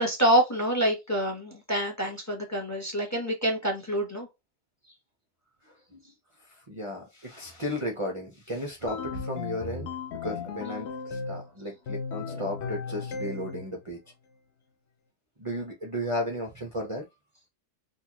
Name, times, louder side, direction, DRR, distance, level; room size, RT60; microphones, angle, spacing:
voice 1, 0.0-4.3, right 1 dB, 15° left, 0.7 m, -26 dB
voice 2, 6.5-14.0 15.4-17.0, equal, 55° right, 0.3 m, -34 dB
sound 1, 8.9-11.5 11.9-13.7, left 5 dB, 70° left, 0.6 m, -35 dB
3.9 x 2.5 x 2.9 m
omnidirectional pair, 1.7 m